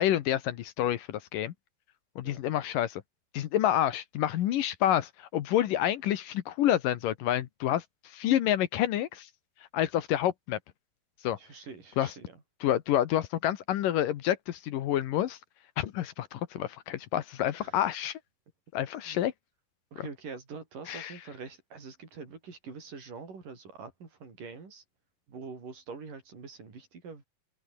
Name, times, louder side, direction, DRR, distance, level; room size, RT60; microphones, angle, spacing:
voice 1, 0.0-1.5 2.2-3.0 3.3-9.3 9.7-10.6 11.2-11.4 12.0-12.1 12.6-15.4 15.8-18.2 18.7-19.3 20.0-20.1 20.9-21.1, left 12 dB, 70° left, 2.7 m, -28 dB
voice 2, 11.4-12.3 17.6-17.8 19.1-19.2 19.9-24.8 25.3-27.2, right 5 dB, 60° right, 6.9 m, -45 dB
omnidirectional pair, 4.2 m